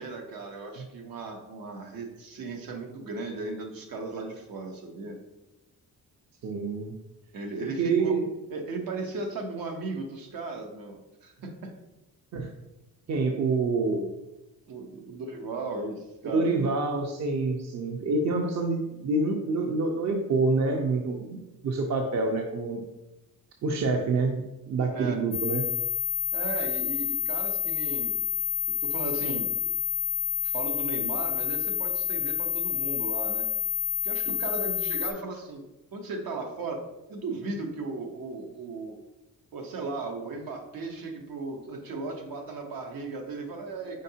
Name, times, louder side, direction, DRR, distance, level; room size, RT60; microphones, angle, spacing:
voice 1, 0.0-5.2 7.3-8.1 8.5-11.7 14.7-16.7 24.9-25.2 26.3-28.1 28.8-29.5 30.4-33.4 34.0-35.6 35.9-36.8 37.1-38.9 39.5-44.0, right 3 dB, 75° right, 3 dB, 0.9 m, -36 dB
voice 2, 6.4-6.9 7.8-8.3 12.3-12.5 13.1-14.1 16.3-22.8 23.6-25.7, right 3 dB, 50° right, 3 dB, 0.6 m, -27 dB
sound 1, 25.3-35.1, left 9 dB, 30° left, 0.4 m, -29 dB
5.2 x 3.6 x 2.8 m, 1.0 s
cardioid pair, 110°, 35 cm